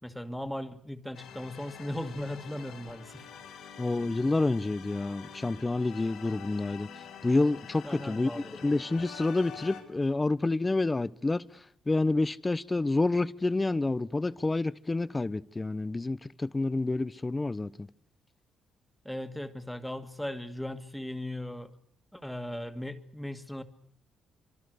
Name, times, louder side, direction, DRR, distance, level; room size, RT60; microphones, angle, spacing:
voice 1, 0.0-3.3 3.6-3.8 7.8-8.6 19.0-21.7 22.1-23.6, left 1 dB, 5° left, 2.2 m, -38 dB
sound 1, 1.1-9.8, left 7 dB, 85° left, 5.4 m, -47 dB
voice 2, 3.8-6.9 7.2-11.4 11.9-17.9, left 2 dB, 20° left, 1.0 m, -28 dB
25.5 x 25.0 x 6.7 m
cardioid pair, 90°, 0 cm